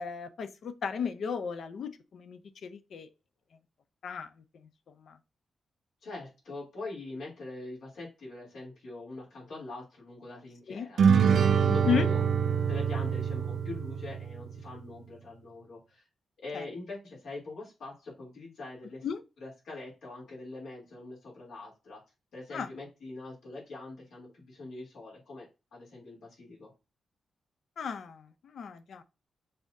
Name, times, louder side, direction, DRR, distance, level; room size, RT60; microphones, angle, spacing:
voice 1, 0.0-3.1 4.0-4.3 4.6-4.7 5.0-5.2 10.7-10.9 11.9-12.1 16.5-16.6 19.0-19.2 22.5-22.7 27.8-29.0, left 7 dB, 60° left, 0.5 m, -34 dB
voice 2, 6.0-12.2 12.7-16.1 16.4-19.1 19.4-22.0 22.3-25.5 25.7-26.7, left 2 dB, 75° left, 2.9 m, -43 dB
sound 1, 11.0-14.6, right 7 dB, 60° right, 0.4 m, -25 dB
5.5 x 3.6 x 2.6 m
wide cardioid pair, 165°, 0 cm